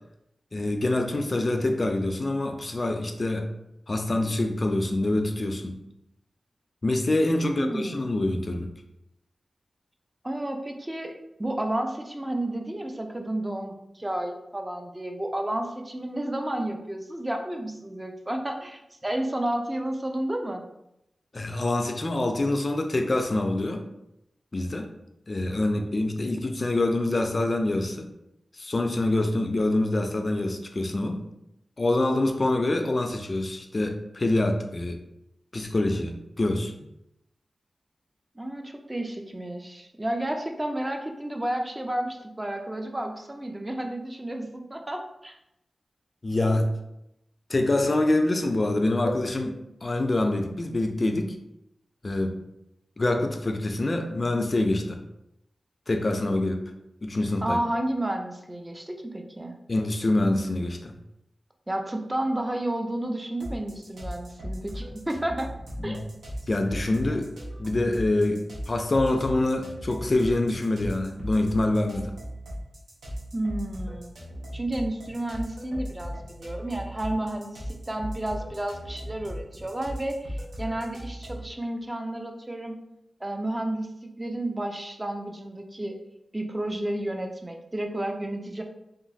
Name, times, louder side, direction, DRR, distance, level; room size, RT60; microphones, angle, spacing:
voice 1, 0.5-3.5 3.9-5.8 6.8-8.7 21.3-23.8 24.5-24.9 25.3-28.1 28.6-31.3 31.8-35.0 35.5-36.7 46.2-46.7 47.5-51.3 52.0-52.4 53.0-55.0 55.9-56.6 57.0-57.6 59.7-60.9 65.8-66.0 66.5-67.3 67.6-72.2, left 2 dB, 45° left, 5 dB, 0.3 m, -25 dB
voice 2, 7.4-8.1 10.2-11.1 11.4-20.6 38.4-45.4 57.4-59.6 61.7-65.5 65.8-66.1 73.3-74.1 74.5-82.8 83.2-86.0 86.3-88.6, right 1 dB, 25° right, 4 dB, 0.5 m, -31 dB
sound 1, 63.4-81.5, equal, 85° right, 0.8 m, -38 dB
2.8 x 2.4 x 2.6 m, 0.83 s
cardioid pair, 45°, 0 cm